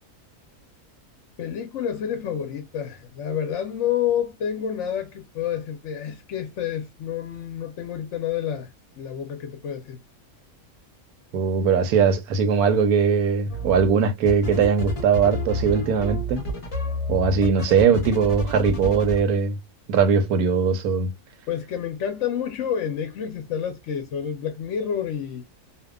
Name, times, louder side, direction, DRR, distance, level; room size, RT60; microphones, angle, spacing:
voice 1, 1.4-8.7 9.0-10.0 21.5-25.4, left 9 dB, 65° left, 0.8 m, -29 dB
voice 2, 11.3-16.4 17.1-19.5 19.9-21.1, right 6 dB, 80° right, 1.1 m, -20 dB
sound 1, 13.5-13.9 14.3-19.2, equal, 30° left, 0.7 m, -30 dB
2.7 x 2.1 x 2.3 m
omnidirectional pair, 1.5 m